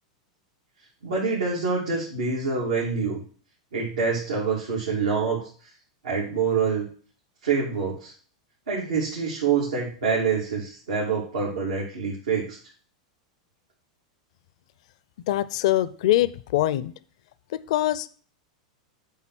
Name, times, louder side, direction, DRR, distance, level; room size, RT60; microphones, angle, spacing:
voice 1, 1.0-3.2 3.7-5.5 6.0-6.8 7.4-8.1 8.7-12.6, right 5 dB, 90° right, -6 dB, 2.8 m, -26 dB
voice 2, 15.3-16.9 17.5-18.1, left 14 dB, 65° left, 16 dB, 0.5 m, -23 dB
8.5 x 3.7 x 6.2 m, 0.43 s
hypercardioid pair, 120°, 4 cm